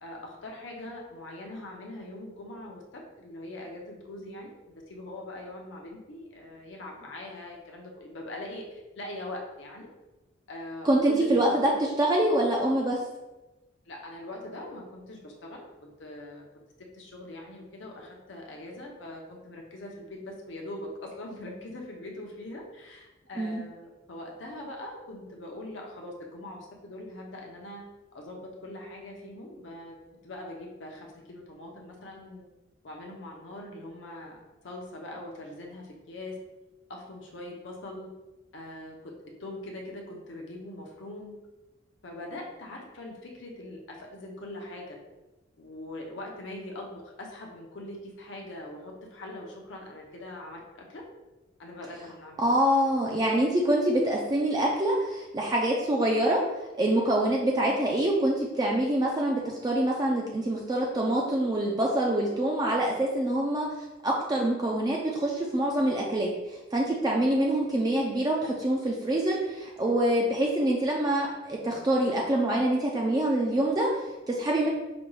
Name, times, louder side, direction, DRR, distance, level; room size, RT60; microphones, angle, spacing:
voice 1, 0.0-9.9 10.5-11.6 13.9-16.4 16.8-30.0 30.2-32.5 32.8-34.4 34.6-36.4 36.9-38.1 38.5-39.1 39.4-41.4 42.0-45.0 45.6-51.0 51.6-52.4 67.1-67.4, left 1 dB, 65° left, 0 dB, 0.6 m, -42 dB
voice 2, 10.8-13.0 23.4-23.6 52.4-56.4 56.8-63.7 64.0-74.7, right 1 dB, 20° right, -2 dB, 0.3 m, -25 dB
5.0 x 2.2 x 3.1 m, 1.1 s
head